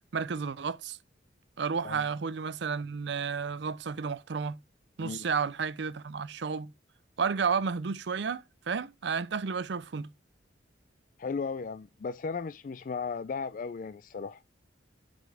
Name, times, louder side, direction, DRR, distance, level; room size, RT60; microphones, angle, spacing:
voice 1, 0.1-1.0 1.6-4.6 5.0-6.7 7.2-10.1, right 5 dB, 65° right, 0.5 m, -32 dB
voice 2, 11.2-14.4, left 5 dB, 45° left, 0.3 m, -36 dB
7.6 x 5.2 x 3.4 m
head